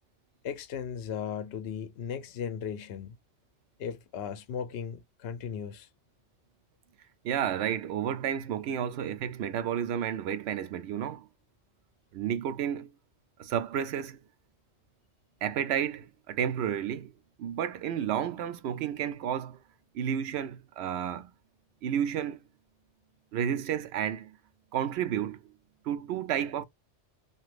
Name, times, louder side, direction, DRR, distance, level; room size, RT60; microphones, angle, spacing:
voice 1, 0.4-3.2 3.8-5.9, left 7 dB, 70° left, 0.8 m, -36 dB
voice 2, 7.2-11.3 12.1-12.9 13.4-14.2 15.4-17.1 17.4-19.6 19.9-21.3 21.8-22.4 23.3-24.4 24.7-25.4 25.8-26.6, right 9 dB, 70° right, 0.8 m, -31 dB
2.9 x 2.5 x 3.1 m
omnidirectional pair, 1.2 m